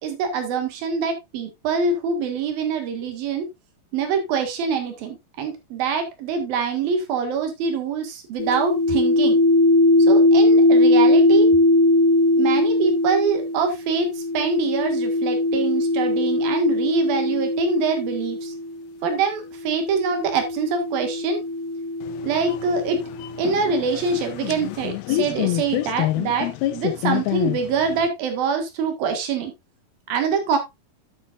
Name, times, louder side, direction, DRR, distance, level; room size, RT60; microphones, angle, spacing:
voice 1, 0.0-3.5 3.9-9.4 10.1-11.5 12.4-18.5 19.0-21.4 22.2-23.0 23.4-29.5 30.1-30.6, right 5 dB, 70° right, 6 dB, 3.5 m, -24 dB
sound 1, 8.4-18.8 19.7-23.4, left 2 dB, 70° left, 2.4 m, -20 dB
sound 2, 22.0-28.1, left 15 dB, 90° left, 2.6 m, -27 dB
9.9 x 8.4 x 2.5 m, 0.21 s
omnidirectional pair, 4.4 m